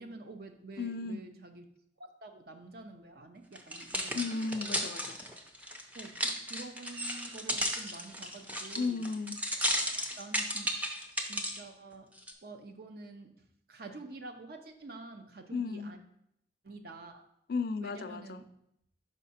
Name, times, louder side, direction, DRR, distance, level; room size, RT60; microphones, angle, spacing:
voice 1, 0.0-1.7 2.0-4.2 5.9-9.1 9.9-10.8 11.2-12.1 12.4-16.0 16.6-17.3 17.8-18.5, right 3 dB, 55° right, 6 dB, 0.6 m, -48 dB
voice 2, 0.8-1.2 4.1-5.2 8.8-9.4 15.5-15.9 17.5-18.4, left 4 dB, 55° left, 10 dB, 0.4 m, -34 dB
sound 1, 3.6-11.6 12.2-12.3, equal, 10° right, 0.5 m, -34 dB
5.5 x 4.8 x 4.2 m, 0.77 s
head